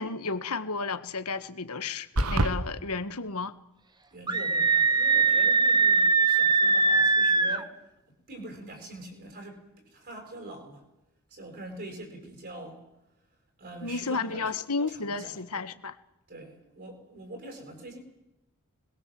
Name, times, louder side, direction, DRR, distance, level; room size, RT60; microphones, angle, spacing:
voice 1, 0.0-3.5 13.8-16.0, left 4 dB, 85° left, 11 dB, 1.6 m, -32 dB
sound 1, 2.2-2.6, right 1 dB, 85° right, 1.8 m, -24 dB
voice 2, 4.1-7.8 8.1-9.6 9.9-10.8 11.3-12.8 13.6-14.4 14.9-15.3 16.3-18.0, right 1 dB, 45° right, 3 dB, 6.6 m, -43 dB
Screaming, 4.3-7.6, right 4 dB, 20° right, 1.3 m, -22 dB
25.5 x 21.5 x 7.8 m, 0.92 s
head